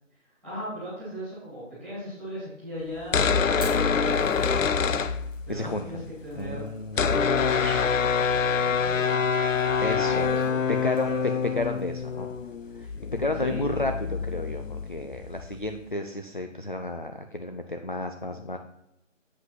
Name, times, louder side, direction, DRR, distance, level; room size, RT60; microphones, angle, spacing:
voice 1, 0.2-5.0 5.4-6.6 6.9-7.9 8.2-9.1 9.6-11.2 12.8-12.9 13.3-13.6, equal, ahead, -13 dB, 2.4 m, -38 dB
sound 1, 3.0-5.7 6.0-6.1 6.2-15.7, left 6 dB, 80° left, 0.7 m, -26 dB
Fire, 3.4-14.8, equal, 15° left, 1.5 m, -52 dB
voice 2, 5.5-6.1 6.3-7.1 8.5-8.6 9.8-10.3 10.7-12.3 12.8-18.6, left 2 dB, 40° left, 5 dB, 0.4 m, -32 dB
sound 2, 7.6-9.5 9.8-10.0, right 4 dB, 45° right, 0.7 m, -45 dB
8.0 x 5.4 x 5.5 m, 0.81 s
figure-of-eight pair, 175°, 38 cm